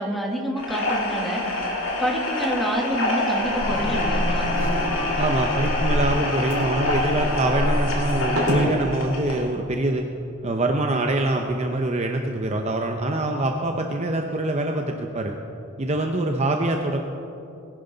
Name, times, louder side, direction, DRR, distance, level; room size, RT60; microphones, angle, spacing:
voice 1, 0.0-1.5 2.0-4.5, equal, ahead, 0 dB, 1.4 m, -27 dB
sound 1, 0.6-9.5, left 2 dB, 60° left, 2.1 m, -27 dB
sound 2, 3.4-8.7, equal, 70° right, 4.0 m, -27 dB
voice 2, 5.2-10.0 10.4-15.3 15.8-17.0, right 1 dB, 30° right, 3 dB, 0.7 m, -24 dB
20.5 x 11.0 x 3.9 m, 2.7 s
head